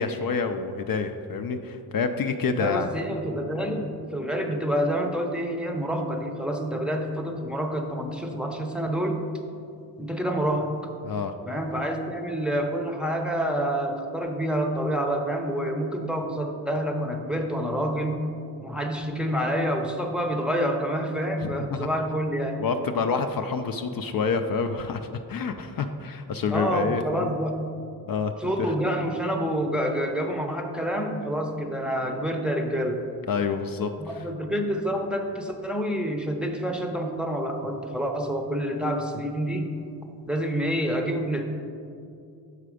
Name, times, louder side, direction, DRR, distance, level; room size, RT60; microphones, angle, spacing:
voice 1, 0.0-2.9 11.0-11.3 21.4-21.9 22.6-27.3 28.1-28.5 33.3-33.9 34.2-34.3, left 5 dB, 55° left, 6 dB, 0.5 m, -28 dB
voice 2, 2.6-9.2 10.0-10.7 11.5-18.2 18.6-22.6 26.5-27.6 28.4-33.0 34.0-39.7 40.3-41.4, equal, ahead, 2 dB, 0.6 m, -28 dB
6.6 x 5.0 x 4.9 m, 2.5 s
cardioid pair, 75°, 42 cm